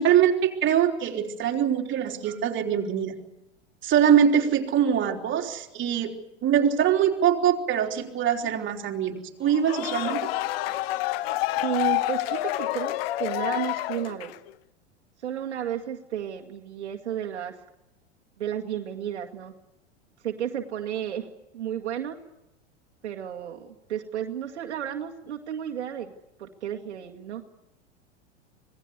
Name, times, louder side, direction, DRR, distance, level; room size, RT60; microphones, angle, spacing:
voice 1, 0.0-3.2 3.8-6.1 6.4-10.3 10.7-10.8, right 9 dB, 35° right, 3 dB, 3.7 m, -23 dB
sound 1, 9.5-14.5, left 16 dB, 55° left, 1.3 m, -28 dB
voice 2, 11.6-14.3 15.2-17.6 18.4-19.5 20.2-21.3 21.5-22.2 23.0-26.1 26.4-27.4, right 10 dB, 75° right, 2 dB, 2.2 m, -32 dB
26.0 x 19.0 x 8.2 m, 0.91 s
hypercardioid pair, 95°, 35 cm